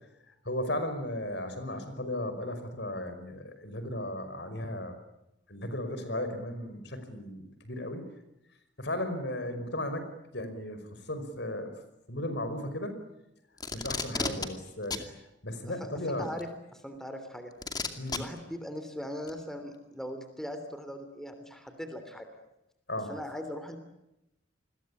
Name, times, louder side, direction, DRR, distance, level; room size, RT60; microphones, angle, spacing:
voice 1, 0.3-4.9 5.5-8.1 8.8-10.1 10.3-11.7 12.1-12.9 13.7-15.2 15.4-16.3 18.0-18.2 22.9-23.1, left 1 dB, 60° left, 9 dB, 5.4 m, -35 dB
Packing tape duct tape, 13.6-14.5 14.9-15.1 16.4-16.5 17.6-18.2 19.3-19.4, left 4 dB, 20° left, 2.4 m, -32 dB
voice 2, 15.8-17.5 18.1-22.3 23.1-23.8, equal, ahead, 7 dB, 3.1 m, -40 dB
29.0 x 22.0 x 8.6 m, 0.89 s
head